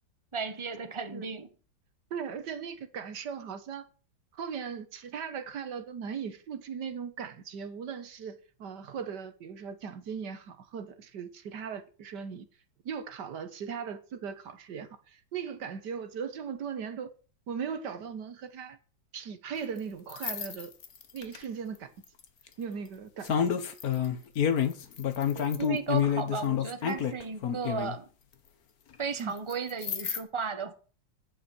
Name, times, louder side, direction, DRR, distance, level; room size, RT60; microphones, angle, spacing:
voice 1, 0.3-1.5 25.3-28.1 29.0-30.7, right 5 dB, 20° right, 1.1 m, -35 dB
voice 2, 2.1-3.9 4.3-12.5 12.9-17.1 17.5-18.8 19.1-20.7 21.1-21.9 22.6-23.6 29.2-29.3, right 6 dB, 65° right, 1.7 m, -38 dB
sound 1, 20.1-21.4 22.2-22.5 23.2-28.0 29.5-30.2, left 8 dB, 55° left, 1.6 m, -29 dB
10.0 x 8.1 x 6.2 m
omnidirectional pair, 2.0 m